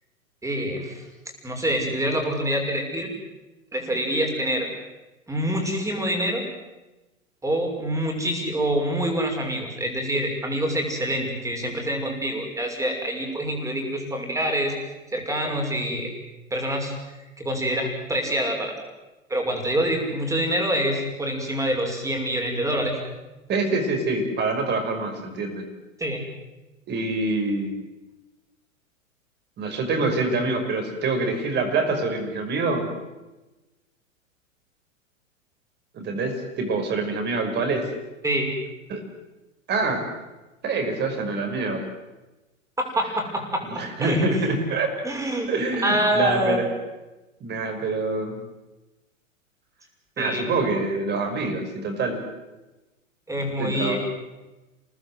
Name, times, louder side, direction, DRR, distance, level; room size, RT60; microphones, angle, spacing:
voice 1, 0.4-1.0 1.4-3.1 3.7-4.7 5.3-6.4 7.4-14.7 15.1-16.1 16.5-16.9 17.4-18.7 19.3-23.0 26.0-26.2 38.2-38.5 42.8-44.2 45.0-45.5 45.8-46.6 50.2-50.4 53.3-54.0, equal, 5° right, 2 dB, 6.2 m, -26 dB
voice 2, 23.5-25.7 26.9-27.8 29.6-32.9 35.9-37.9 38.9-39.0 39.7-40.1 40.6-41.9 43.7-44.9 45.5-46.7 47.4-48.4 50.2-52.2 53.6-54.0, right 3 dB, 25° right, 4 dB, 5.9 m, -25 dB
29.0 x 19.0 x 8.0 m, 1.1 s
figure-of-eight pair, 100°, 41 cm